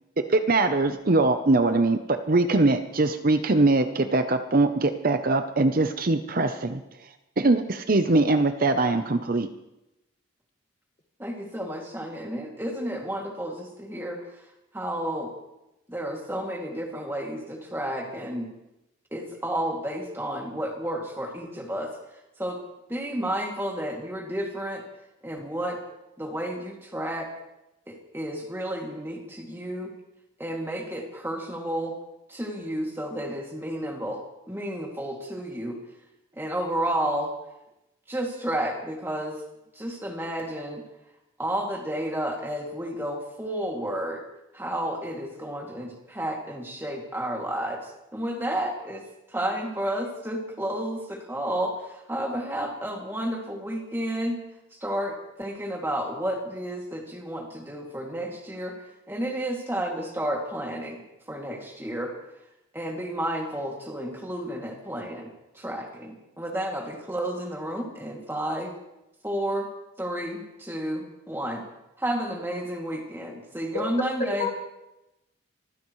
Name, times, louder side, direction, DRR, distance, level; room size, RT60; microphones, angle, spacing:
voice 1, 0.2-6.8 7.4-9.5, right 2 dB, 45° right, 8 dB, 0.7 m, -22 dB
voice 2, 11.2-14.3 14.7-15.3 15.9-18.5 19.1-21.9 22.4-22.6 22.9-24.8 25.2-25.8 26.2-27.3 27.9-29.9 30.4-31.9 32.3-35.8 36.4-37.3 38.1-39.4 39.7-40.8 41.4-44.2 44.5-49.0 49.3-54.4 54.7-58.7 59.1-61.0 61.3-62.1 62.7-65.3 65.5-68.7 69.2-69.7 70.0-71.6 72.0-74.5, right 1 dB, 10° right, 0 dB, 2.4 m, -31 dB
voice 3, 73.7-74.5, left 3 dB, 35° left, 3 dB, 1.7 m, -29 dB
25.0 x 15.0 x 3.2 m, 0.93 s
head